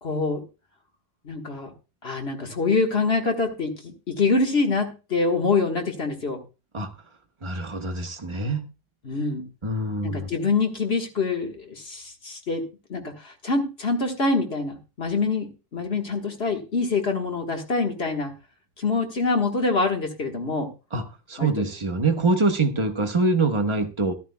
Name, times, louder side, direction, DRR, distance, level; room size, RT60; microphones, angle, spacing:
voice 1, 0.0-0.4 1.2-1.7 2.0-6.4 9.0-9.5 10.0-12.6 12.9-18.3 18.8-20.7 21.4-21.7, left 3 dB, 35° left, 3 dB, 1.6 m, -25 dB
voice 2, 7.4-8.7 9.6-10.3 20.9-24.1, right 3 dB, 25° right, 5 dB, 0.8 m, -24 dB
13.5 x 11.5 x 2.2 m, 0.29 s
omnidirectional pair, 2.0 m